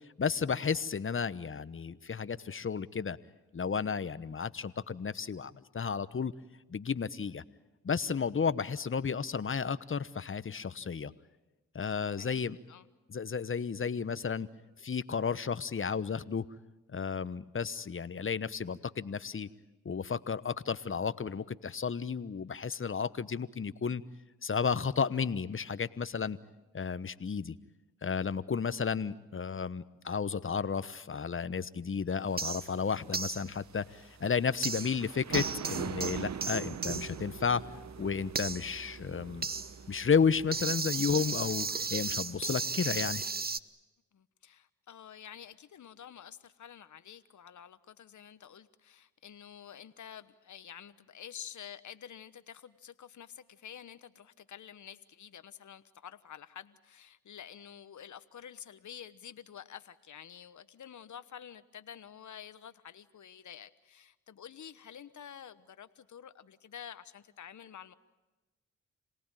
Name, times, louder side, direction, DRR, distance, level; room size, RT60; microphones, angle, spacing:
voice 1, 0.2-3.2 3.5-6.3 6.7-7.4 7.8-11.1 11.7-12.6 13.1-14.5 14.8-16.4 16.9-19.5 19.8-24.0 24.4-26.4 26.7-27.5 28.0-37.6 38.0-39.5 39.9-43.2, left 6 dB, 35° left, 15 dB, 1.1 m, -32 dB
voice 2, 12.2-12.9 42.8-43.1 44.1-67.9, left 9 dB, 60° left, 13 dB, 1.2 m, -49 dB
sound 1, 32.3-43.3, right 7 dB, 50° right, 1.0 m, -44 dB
sound 2, 32.4-32.7 33.1-33.5 34.6-35.1 35.3-43.6, right 4 dB, 25° right, 1.0 m, -36 dB
27.0 x 18.5 x 9.1 m, 1.1 s
supercardioid pair, 45°, 34 cm